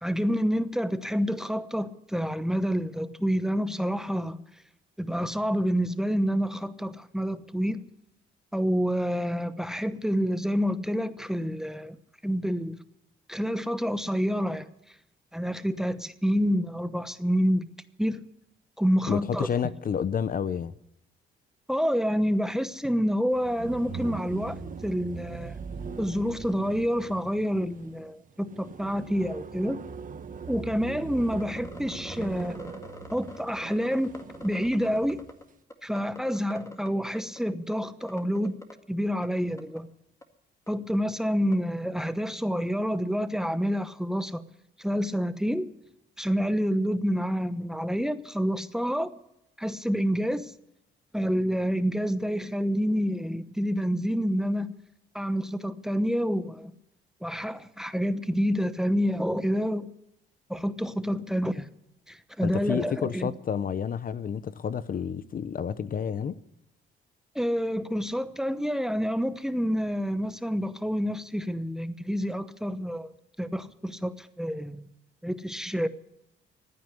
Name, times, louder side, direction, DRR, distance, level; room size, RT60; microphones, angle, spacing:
voice 1, 0.0-4.4 5.0-7.8 8.5-12.0 12.2-12.8 13.3-14.7 15.3-17.7 18.0-18.2 18.8-19.5 21.7-25.6 26.0-29.8 30.5-32.6 33.1-34.1 34.4-35.2 35.8-38.6 38.9-39.9 40.7-44.4 44.8-45.7 46.2-49.1 49.6-50.5 51.1-54.7 55.1-56.7 57.2-59.9 60.5-61.7 62.1-63.3 67.3-73.1 73.4-74.9 75.2-75.9, equal, ahead, 1.0 m, -28 dB
voice 2, 19.1-20.7 62.4-66.4, left 7 dB, 45° left, 0.7 m, -30 dB
sound 1, 23.3-35.3, right 5 dB, 40° right, 1.4 m, -41 dB
sound 2, 31.3-35.4 35.7-36.9 37.2-37.8 38.0-38.7 39.2-39.3 39.6-39.8 40.2-40.3 40.7-40.8 41.5-41.6, left 2 dB, 15° left, 2.0 m, -43 dB
15.0 x 9.4 x 9.7 m
cardioid pair, 90°, 20 cm